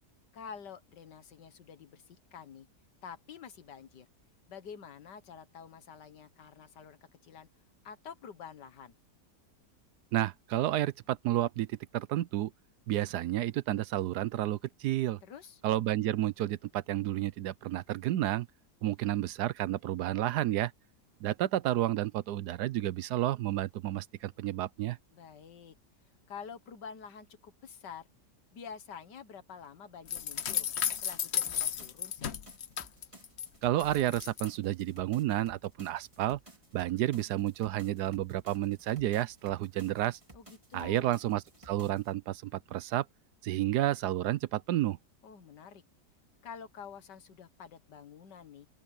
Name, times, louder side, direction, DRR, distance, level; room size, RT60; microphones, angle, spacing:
voice 1, 0.3-2.7 3.0-4.1 4.5-7.5 7.8-9.0 15.2-15.6 25.1-25.8 26.3-28.1 28.5-30.7 30.9-32.3 40.3-41.1 45.2-45.8 46.4-48.7, left 7 dB, 80° left, 2.0 m, -48 dB
voice 2, 10.1-12.5 12.9-15.2 15.6-18.5 18.8-20.7 21.2-25.0 33.6-36.4 36.7-40.2 40.7-43.1 43.4-45.0, right 13 dB, 75° right, 1.1 m, -31 dB
sound 1, 30.1-33.5 33.8-34.5, left 9 dB, 50° left, 0.9 m, -34 dB
sound 2, 31.5-42.1, right 1 dB, 20° right, 2.3 m, -57 dB
open air
omnidirectional pair, 1.8 m